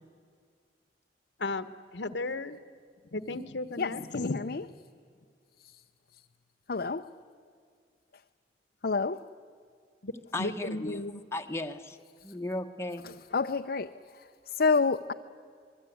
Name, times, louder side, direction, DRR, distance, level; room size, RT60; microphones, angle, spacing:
voice 1, 1.9-2.6 3.1-4.6 10.0-10.1 10.4-11.2, left 2 dB, 85° left, 1.2 m, -34 dB
voice 2, 3.8-4.6 6.7-7.1 8.8-9.3 13.0-15.1, left 4 dB, 60° left, 0.6 m, -29 dB
voice 3, 10.3-11.0 11.3-12.0 12.2-13.1, left 2 dB, 15° left, 1.1 m, -35 dB
27.0 x 21.5 x 9.4 m
head